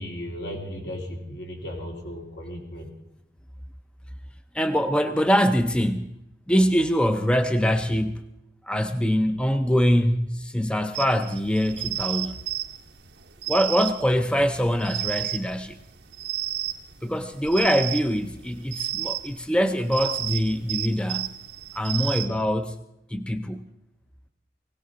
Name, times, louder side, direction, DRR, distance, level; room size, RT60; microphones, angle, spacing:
voice 1, 0.0-2.9, equal, 80° left, -1 dB, 3.2 m, -35 dB
voice 2, 4.5-6.1 6.5-8.2 8.6-12.4 13.5-15.8 17.0-21.3 21.7-22.8 23.1-23.7, equal, 5° left, 8 dB, 0.5 m, -23 dB
sound 1, 10.9-22.3, right 14 dB, 90° right, 1.0 m, -32 dB
19.5 x 17.5 x 4.0 m, 0.87 s
head